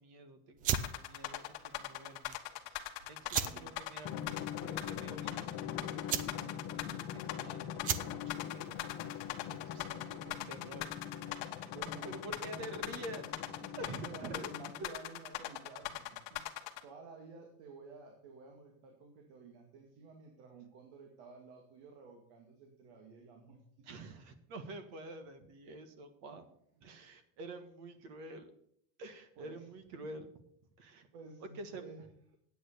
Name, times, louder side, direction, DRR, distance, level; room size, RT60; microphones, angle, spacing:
voice 1, 0.0-2.4 2.6-4.3 4.6-9.4 9.7-10.9 11.4-11.7 12.0-13.3 13.8-14.5 14.8-15.0 23.8-26.4 26.8-28.5 29.0-30.3 30.8-31.1 31.5-31.8, right 2 dB, 50° right, 9 dB, 1.6 m, -48 dB
sound 1, 0.6-10.1, right 8 dB, 25° right, 0.4 m, -40 dB
sound 2, 0.7-16.8, left 15 dB, 60° left, 1.4 m, -41 dB
voice 2, 3.4-3.8 7.8-8.1 9.9-10.4 11.6-12.9 13.6-23.9 29.4-29.7 29.9-30.1 31.1-32.0, right 4 dB, 75° right, 2 dB, 2.4 m, -53 dB
Drum, 4.0-15.0, left 9 dB, 40° left, 0.9 m, -44 dB
9.1 x 8.5 x 6.8 m, 0.72 s
cardioid pair, 175°, 33 cm